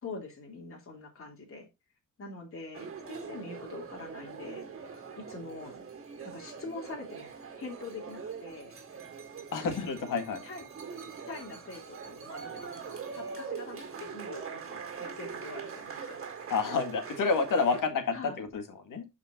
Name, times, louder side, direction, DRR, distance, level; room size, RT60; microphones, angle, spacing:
voice 1, 0.0-1.7 2.2-4.6 5.1-5.8 6.2-7.3 7.6-8.7 10.4-10.6 11.0-16.2 18.1-18.4, left 3 dB, 45° left, 0 dB, 2.9 m, -44 dB
sound 1, 2.7-17.8, right 6 dB, 45° right, 2.0 m, -42 dB
voice 2, 9.5-10.4 16.5-19.1, left 4 dB, 90° left, 7 dB, 2.0 m, -29 dB
12.0 x 5.0 x 2.7 m, 0.23 s
wide cardioid pair, 145°, 31 cm